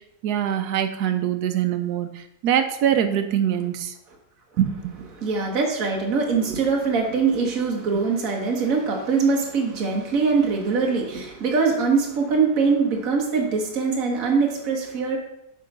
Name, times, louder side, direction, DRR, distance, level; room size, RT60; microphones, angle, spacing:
voice 1, 0.2-3.9 4.6-5.1, right 10 dB, 90° right, 8 dB, 1.2 m, -23 dB
voice 2, 5.1-15.2, right 4 dB, 60° right, 0 dB, 1.6 m, -22 dB
8.3 x 3.8 x 5.4 m, 0.80 s
omnidirectional pair, 1.6 m